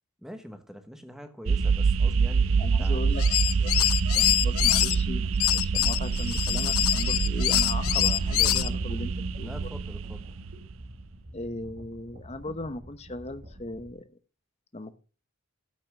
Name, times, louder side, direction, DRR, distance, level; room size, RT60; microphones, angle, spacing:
voice 1, 0.2-3.0 4.2-4.4 7.0-7.3 9.4-10.4, equal, ahead, 1.2 m, -44 dB
sound 1, 1.5-10.7, right 5 dB, 60° right, 0.5 m, -26 dB
voice 2, 2.6-3.9 4.1-9.6 11.3-14.0 14.7-15.0, left 2 dB, 30° left, 0.9 m, -38 dB
sound 2, 3.1-4.9 5.4-8.7, left 15 dB, 75° left, 0.5 m, -25 dB
sound 3, 7.7-13.9, equal, 45° right, 2.0 m, -47 dB
13.5 x 5.8 x 6.0 m
head